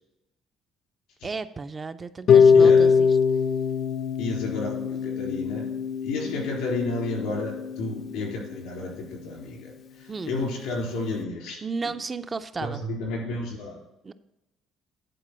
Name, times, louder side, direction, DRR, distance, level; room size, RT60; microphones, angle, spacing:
voice 1, 1.2-3.2 6.2-6.5 10.1-10.3 11.6-12.8 14.0-14.1, right 4 dB, 20° right, 11 dB, 0.3 m, -34 dB
Harp, 2.3-8.3, left 6 dB, 45° left, 0.4 m, -22 dB
voice 2, 2.5-2.9 4.2-5.7 6.0-11.9 12.6-13.8, left 2 dB, 85° left, 0 dB, 3.7 m, -32 dB
10.5 x 4.5 x 6.1 m, 0.95 s
cardioid pair, 165°, 0 cm